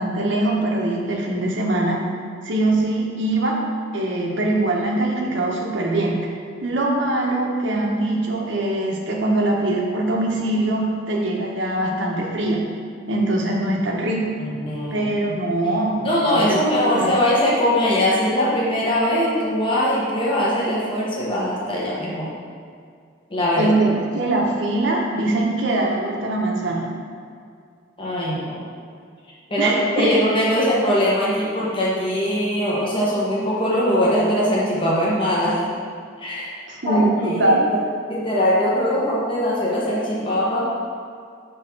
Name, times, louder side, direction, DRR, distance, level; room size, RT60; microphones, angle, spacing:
voice 1, 0.0-2.0 2.4-3.6 3.9-6.2 6.6-12.6 13.1-14.4 14.9-16.1 16.3-17.1 23.6-26.9 29.6-30.1 36.7-37.7, right 2 dB, 70° right, -2 dB, 1.1 m, -22 dB
voice 2, 14.4-15.3 16.0-22.3 23.3-23.7 28.0-28.6 29.5-35.6 36.2-36.6 36.8-40.7, equal, 25° left, -6 dB, 1.1 m, -21 dB
6.5 x 3.6 x 6.0 m, 2.2 s
head